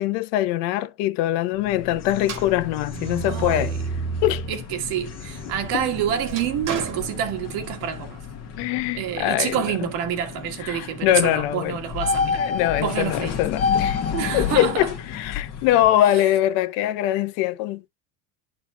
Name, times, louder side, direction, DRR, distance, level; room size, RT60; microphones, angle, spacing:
voice 1, 0.0-3.7 4.2-4.5 5.7-5.8 8.6-9.7 10.6-11.8 12.3-14.0 14.3-17.9, left 14 dB, 70° left, 1.0 m, -23 dB
sound 1, 1.5-16.0, left 6 dB, 35° left, 1.4 m, -31 dB
sound 2, 2.2-4.6 5.1-7.9, right 5 dB, 45° right, 1.6 m, -32 dB
voice 2, 3.3-3.7 4.5-8.3 8.9-12.5 12.8-13.4 14.1-14.9 16.1-16.2, right 9 dB, 65° right, 1.8 m, -27 dB
11.5 x 4.4 x 2.3 m
supercardioid pair, 130°, 44 cm